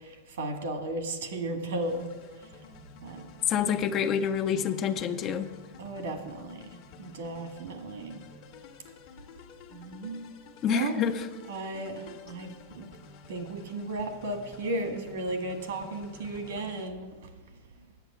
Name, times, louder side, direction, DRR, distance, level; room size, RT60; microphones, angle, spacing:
voice 1, 0.4-2.1 3.0-3.2 5.8-6.5 7.0-8.2 9.7-10.2 10.7-11.0 11.5-11.9 12.3-12.5 12.7-12.9 13.3-17.1, right 2 dB, 80° right, 5 dB, 1.8 m, -34 dB
sound 1, 1.8-16.9, left 4 dB, 50° left, 1.4 m, -51 dB
voice 2, 3.5-5.5 10.6-11.3, left 7 dB, 30° left, 9 dB, 0.6 m, -27 dB
9.2 x 8.0 x 6.9 m, 1.3 s
supercardioid pair, 145°, 0 cm